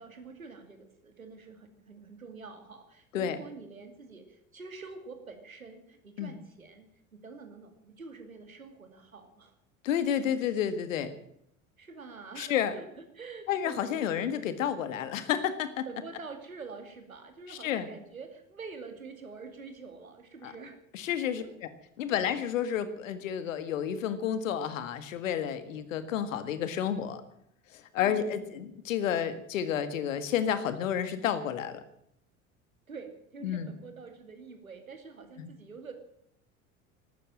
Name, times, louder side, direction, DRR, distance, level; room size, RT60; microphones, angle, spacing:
voice 1, 0.0-9.5 10.4-10.6 11.8-14.2 15.9-20.8 21.4-21.5 22.2-22.3 28.0-28.7 32.9-35.9, right 4 dB, 85° right, 7 dB, 2.5 m, -46 dB
voice 2, 9.8-11.1 12.4-12.7 13.5-15.9 17.5-17.9 20.4-20.5 20.9-21.4 22.0-27.2 27.7-31.8 33.4-33.7 35.4-35.5, left 9 dB, 70° left, 12 dB, 1.9 m, -30 dB
14.5 x 13.0 x 7.6 m, 0.74 s
figure-of-eight pair, 65°, 40 cm